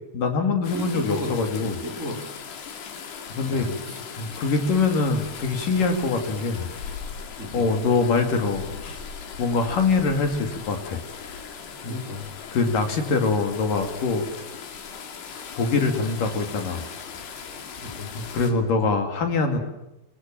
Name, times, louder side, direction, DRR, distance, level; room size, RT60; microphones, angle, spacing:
voice 1, 0.1-1.8 3.4-3.7 4.2-6.7 7.5-9.0 9.4-11.5 11.8-12.0 12.5-14.3 15.6-16.8 17.1-17.4 18.2-19.6, left 4 dB, 60° left, 5 dB, 4.1 m, -24 dB
sound 1, 0.6-18.5, left 6 dB, 90° left, 5.0 m, -39 dB
voice 2, 0.7-2.3 3.4-4.0 7.4-7.7 11.9-12.3 17.8-18.1, equal, 20° right, 3 dB, 4.6 m, -34 dB
27.0 x 23.0 x 7.6 m, 0.94 s
omnidirectional pair, 4.5 m